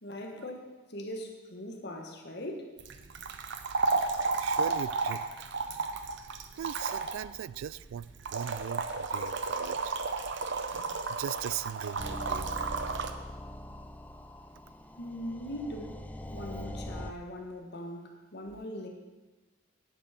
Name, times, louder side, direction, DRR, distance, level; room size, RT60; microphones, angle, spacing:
voice 1, 0.0-2.7 15.0-16.0 16.3-18.9, left 1 dB, 55° left, 2 dB, 1.6 m, -40 dB
sound 1, 2.8-13.1, right 4 dB, 60° right, 0.7 m, -33 dB
voice 2, 4.4-5.5 6.6-9.9 11.1-12.5, right 9 dB, 80° right, 19 dB, 0.3 m, -39 dB
sound 2, 12.0-17.1, left 1 dB, 10° left, 0.4 m, -42 dB
11.0 x 8.2 x 5.2 m, 1.2 s
head